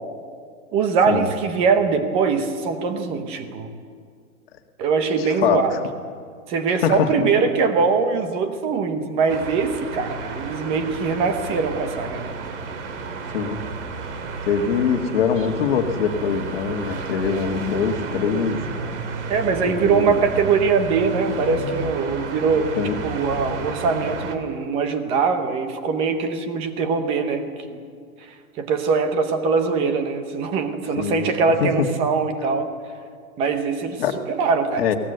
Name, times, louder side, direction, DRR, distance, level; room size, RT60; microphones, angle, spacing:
voice 1, 0.7-3.7 4.8-5.7 6.5-12.3 19.3-22.7 23.0-27.8 28.3-32.7 33.4-34.9, right 5 dB, 15° right, 8 dB, 0.9 m, -22 dB
voice 2, 5.2-5.6 6.8-7.3 13.3-13.6 14.5-18.6 19.6-20.2 22.8-23.0 30.9-31.3 31.6-31.9 34.0-34.2 34.8-35.0, left 7 dB, 40° left, 5 dB, 1.8 m, -23 dB
sound 1, 9.3-24.4, right 4 dB, 50° right, 2.7 m, -32 dB
22.5 x 18.5 x 7.9 m, 2.1 s
hypercardioid pair, 165°, 45 cm